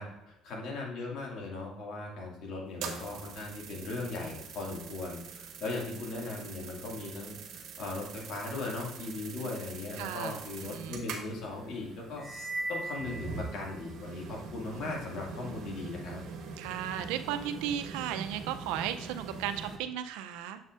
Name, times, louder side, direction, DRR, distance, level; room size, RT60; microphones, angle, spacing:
voice 1, 0.0-12.2 12.7-16.2, left 3 dB, 65° left, -1 dB, 2.1 m, -38 dB
sound 1, 2.7-19.8, right 5 dB, 70° right, 1.1 m, -44 dB
voice 2, 10.0-11.0 16.6-20.6, right 10 dB, 90° right, 9 dB, 0.5 m, -35 dB
sound 2, 12.2-14.0, right 2 dB, 15° left, 1.3 m, -39 dB
7.2 x 6.4 x 2.5 m, 0.92 s
cardioid pair, 95°, 0 cm